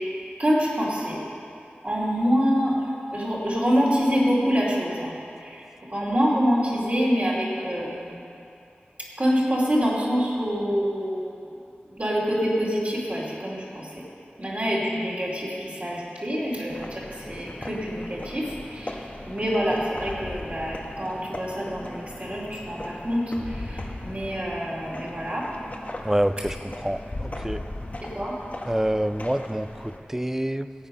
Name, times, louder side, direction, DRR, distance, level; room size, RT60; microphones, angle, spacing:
voice 1, 0.4-1.2 1.8-2.8 3.1-5.1 5.4-5.6 5.9-8.2 9.2-11.3 11.9-13.9 14.4-19.0 19.2-25.5 28.1-28.3, equal, 40° right, -7 dB, 2.8 m, -26 dB
sound 1, 16.7-30.0, left 1 dB, 40° left, 1.2 m, -38 dB
voice 2, 26.0-27.6 28.7-30.7, right 1 dB, 10° right, 11 dB, 0.4 m, -27 dB
16.5 x 8.3 x 5.6 m, 2.7 s
wide cardioid pair, 65°, 4 cm